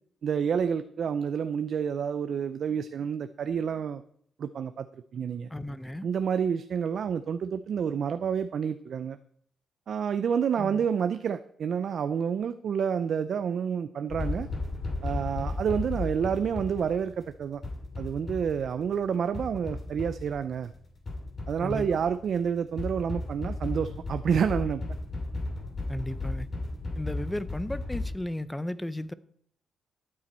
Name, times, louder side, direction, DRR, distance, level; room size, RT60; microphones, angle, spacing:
voice 1, 0.2-4.0 4.4-5.5 6.0-9.2 9.9-14.5 15.0-17.6 18.0-20.7 21.5-24.8, right 7 dB, 60° right, 0.5 m, -29 dB
voice 2, 5.5-6.1 10.6-10.8 21.6-21.9 25.9-26.5 27.0-29.1, left 1 dB, 10° left, 0.6 m, -34 dB
sound 1, 14.1-28.1, left 2 dB, 40° left, 2.9 m, -35 dB
13.5 x 8.7 x 4.4 m
cardioid pair, 105°, 0 cm